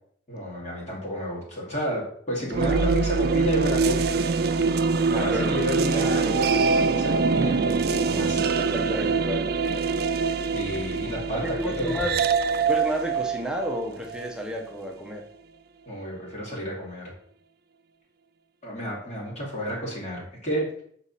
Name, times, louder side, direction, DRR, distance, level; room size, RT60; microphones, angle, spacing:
voice 1, 0.3-4.3 5.1-8.5 10.5-11.9 15.8-17.1 18.6-20.8, equal, 40° left, -4 dB, 2.3 m, -31 dB
sound 1, 2.5-14.7, right 4 dB, 60° right, 0.4 m, -24 dB
voice 2, 5.1-5.6 8.6-9.5 11.0-12.2 12.7-15.2, equal, 5° right, 1 dB, 0.8 m, -31 dB
6.8 x 4.1 x 4.1 m, 0.64 s
head